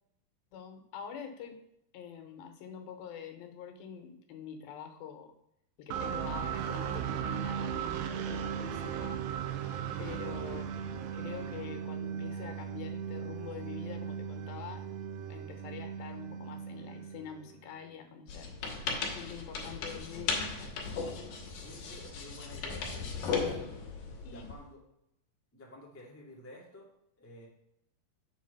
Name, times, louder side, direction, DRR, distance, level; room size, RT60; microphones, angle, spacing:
voice 1, 0.5-1.6 1.9-5.3 5.8-9.3 10.0-15.0 15.3-18.6 19.1-20.9 24.2-24.5, left 7 dB, 85° left, 6 dB, 2.7 m, -45 dB
sound 1, 5.9-17.7, right 8 dB, 85° right, 2.3 m, -37 dB
voice 2, 9.7-10.1 21.2-23.8 24.3-24.8 25.5-26.9 27.2-27.5, left 1 dB, 10° left, -4 dB, 0.6 m, -52 dB
sound 2, 18.3-24.6, left 5 dB, 65° left, 2.3 m, -36 dB
7.2 x 3.9 x 5.5 m, 0.80 s
omnidirectional pair, 4.2 m